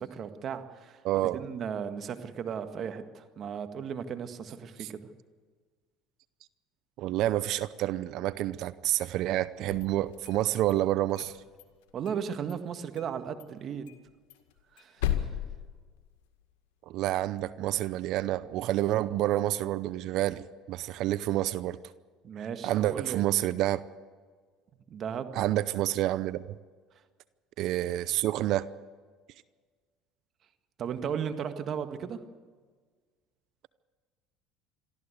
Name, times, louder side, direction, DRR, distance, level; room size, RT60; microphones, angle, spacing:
voice 1, 0.0-1.0 1.3-5.0 11.9-13.9 14.7-15.2 22.2-23.3 24.9-25.3 30.8-32.2, right 7 dB, 50° right, 8 dB, 1.8 m, -36 dB
voice 2, 1.0-1.4 4.8-4.9 7.0-11.4 16.9-21.8 22.6-23.8 25.3-26.6 27.6-28.7, right 14 dB, 65° right, 16 dB, 0.6 m, -28 dB
sound 1, 9.6-10.7 11.1-12.2 12.5-12.6 13.0-13.1 13.4-13.5 13.9-16.4, left 12 dB, 80° left, 1.9 m, -36 dB
23.0 x 14.0 x 8.2 m, 1.5 s
supercardioid pair, 80°, 0 cm